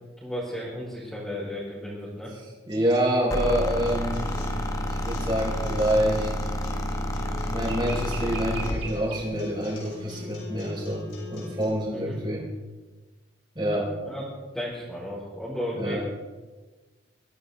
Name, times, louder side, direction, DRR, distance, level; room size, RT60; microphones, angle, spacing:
voice 1, 0.2-2.3 11.9-12.2 14.0-14.2 14.5-16.0, equal, 5° left, -9 dB, 4.4 m, -34 dB
voice 2, 2.7-4.3 4.8-6.3 7.5-12.5 13.5-13.9 15.8-16.0, right 1 dB, 25° right, -4 dB, 5.0 m, -27 dB
sound 1, 2.7-3.0 7.6-9.4, right 5 dB, 65° right, 3.1 m, -41 dB
sound 2, 3.3-8.9, left 1 dB, 20° left, 1.3 m, -29 dB
Acoustic guitar, 3.7-11.6, left 1 dB, 80° left, 6.5 m, -41 dB
23.5 x 15.0 x 3.6 m, 1.3 s
head